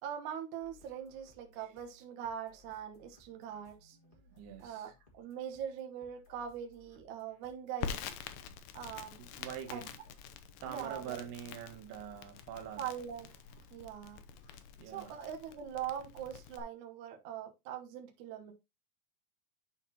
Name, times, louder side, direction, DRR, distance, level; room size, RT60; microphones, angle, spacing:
voice 1, 0.0-4.0 4.6-8.0 8.7-9.1 9.7-9.8 10.7-11.3 12.8-13.3 13.7-14.2 14.9-18.5, right 9 dB, 65° right, 2.2 m, -42 dB
sound 1, 0.6-14.6, left 3 dB, 45° left, 0.6 m, -64 dB
voice 2, 4.1-4.9 9.2-10.0 10.6-12.8 14.8-15.1, right 9 dB, 85° right, 3.0 m, -45 dB
Crackle, 7.8-16.6, left 8 dB, 75° left, 2.0 m, -46 dB
11.0 x 4.1 x 2.8 m
omnidirectional pair, 4.4 m